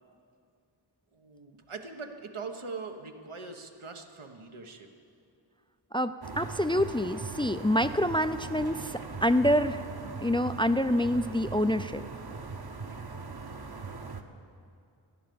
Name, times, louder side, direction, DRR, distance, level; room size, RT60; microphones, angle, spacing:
voice 1, 1.1-4.9, right 4 dB, 90° right, 4 dB, 1.2 m, -42 dB
voice 2, 5.9-9.9 10.2-12.0, equal, 10° left, 11 dB, 0.3 m, -27 dB
sound 1, 6.2-14.2, right 4 dB, 50° right, 1.0 m, -40 dB
14.5 x 10.5 x 6.9 m, 2.4 s
wide cardioid pair, 40°, 48 cm